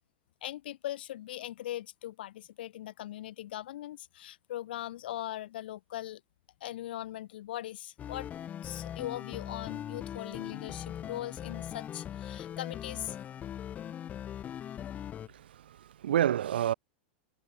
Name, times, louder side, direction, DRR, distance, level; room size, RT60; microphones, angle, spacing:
voice 1, 0.4-6.2 6.6-8.3 8.6-13.2, left 13 dB, 75° left, 5.2 m, -40 dB
sound 1, 8.0-15.3, left 10 dB, 25° left, 4.7 m, -40 dB
voice 2, 15.3-16.7, right 11 dB, 85° right, 5.4 m, -29 dB
supercardioid pair, 130°, 5 cm